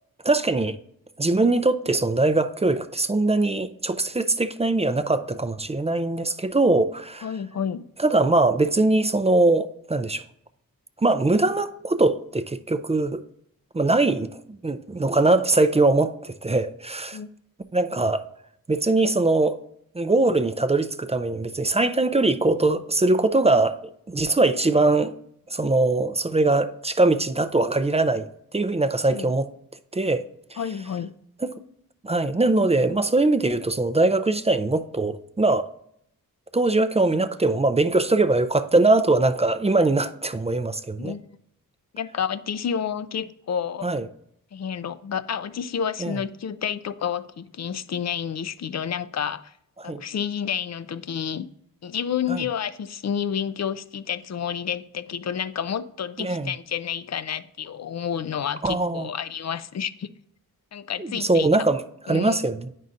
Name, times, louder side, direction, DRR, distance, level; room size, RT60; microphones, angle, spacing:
voice 1, 0.2-0.8 1.2-7.3 8.0-10.2 11.0-13.2 13.7-17.2 17.7-18.2 18.7-19.6 19.9-23.8 24.1-25.1 25.5-28.3 28.5-29.5 29.9-30.2 30.5-30.6 31.4-31.5 32.0-35.7 36.5-41.2 43.8-44.0 46.0-46.2 49.8-50.0 52.3-52.4 56.2-56.5 58.6-59.1 61.0-61.8 62.1-62.7, right 2 dB, 20° right, 0.4 m, -22 dB
voice 2, 7.2-7.8 17.1-17.3 29.1-29.3 30.6-31.1 41.0-41.2 41.9-43.9 44.5-49.5 49.8-51.5 51.8-60.1 60.7-61.5 62.1-62.4, left 8 dB, 50° left, 0.4 m, -30 dB
9.1 x 5.4 x 2.5 m
wide cardioid pair, 80°, 36 cm